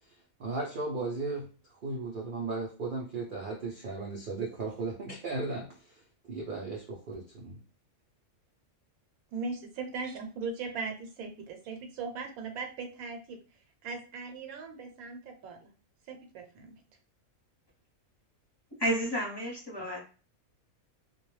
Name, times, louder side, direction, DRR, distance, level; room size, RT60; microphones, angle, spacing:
voice 1, 0.0-6.0 6.3-7.6, right 3 dB, 65° right, -2 dB, 0.5 m, -36 dB
voice 2, 9.3-13.4 13.8-15.7 16.1-16.7, right 4 dB, 80° right, 4 dB, 1.0 m, -39 dB
voice 3, 18.8-20.0, right 1 dB, 25° left, -4 dB, 0.6 m, -31 dB
2.3 x 2.1 x 3.0 m, 0.37 s
omnidirectional pair, 1.5 m